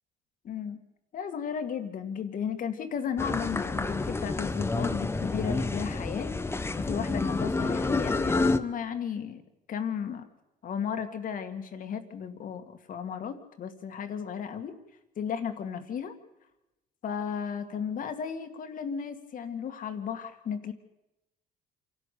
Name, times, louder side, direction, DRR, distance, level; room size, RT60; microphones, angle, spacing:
voice 1, 0.4-0.8 1.1-6.3 6.8-9.4 9.7-10.3 10.6-14.8 15.2-16.1 17.0-20.7, left 7 dB, 55° left, 8 dB, 2.2 m, -34 dB
sound 1, 3.2-8.6, left 3 dB, 15° left, 1.0 m, -29 dB
27.0 x 12.0 x 8.4 m, 0.94 s
cardioid pair, 110°, 17 cm